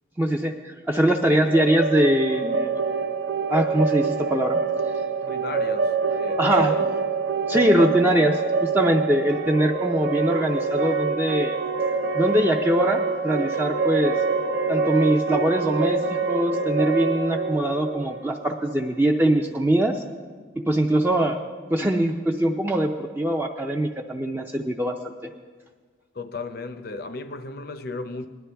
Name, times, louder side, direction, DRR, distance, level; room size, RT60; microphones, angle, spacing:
voice 1, 0.2-2.7 3.5-4.6 6.4-6.7 7.5-11.5 12.1-14.1 14.7-16.0 16.3-20.0 20.6-21.4 21.7-25.0, right 1 dB, 10° right, 0.5 m, -22 dB
sound 1, 1.3-19.1, right 4 dB, 65° right, 0.7 m, -26 dB
voice 2, 5.2-7.0 26.1-28.3, left 3 dB, 50° left, 0.6 m, -35 dB
19.5 x 11.0 x 3.4 m
head